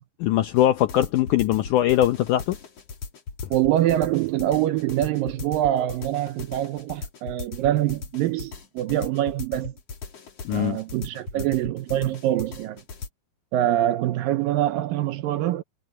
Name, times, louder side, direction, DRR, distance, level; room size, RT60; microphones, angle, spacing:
voice 1, 0.2-2.6 10.5-10.8, left 13 dB, 80° left, 1.8 m, -21 dB
sound 1, 0.6-13.1, left 4 dB, 45° left, 3.3 m, -38 dB
voice 2, 3.5-9.7 10.5-12.8 13.5-15.6, right 13 dB, 75° right, 2.3 m, -24 dB
omnidirectional pair, 4.4 m